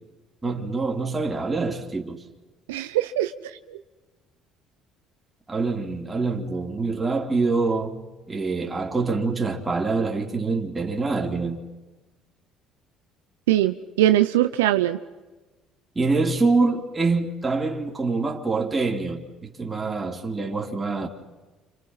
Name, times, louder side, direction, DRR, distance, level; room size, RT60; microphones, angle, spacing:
voice 1, 0.4-2.2 5.5-8.0 8.3-11.6 16.0-21.1, right 3 dB, 20° right, 3.8 m, -25 dB
voice 2, 2.7-3.3 3.7-3.8 13.5-15.0, right 13 dB, 90° right, 0.8 m, -21 dB
29.5 x 28.0 x 5.8 m
hypercardioid pair, 65°, 0 cm